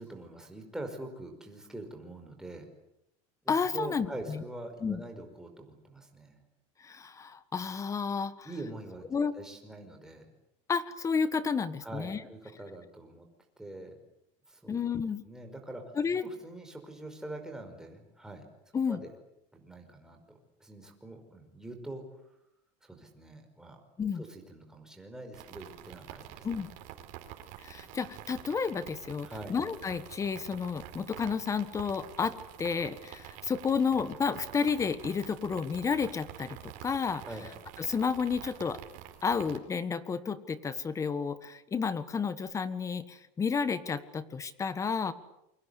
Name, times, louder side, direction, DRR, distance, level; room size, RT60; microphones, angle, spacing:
voice 1, 0.0-2.7 3.4-6.4 8.4-10.3 11.8-13.3 13.6-14.0 14.5-14.9 15.2-15.9 16.2-18.4 18.9-19.1 19.5-22.0 22.8-23.8 24.1-26.5 29.2-29.5 37.2-37.5, right 1 dB, 5° right, 3 dB, 5.3 m, -44 dB
voice 2, 3.5-4.4 4.8-5.0 6.8-8.5 9.1-9.3 10.7-12.2 14.7-15.2 16.0-16.2 18.7-19.0 24.0-24.2 26.4-26.7 27.6-37.2 37.9-38.8 39.2-45.1, left 5 dB, 20° left, 14 dB, 1.5 m, -31 dB
sound 1, 25.3-39.6, right 12 dB, 55° right, 4.5 m, -48 dB
28.0 x 24.0 x 8.4 m, 0.81 s
cardioid pair, 150°, 17 cm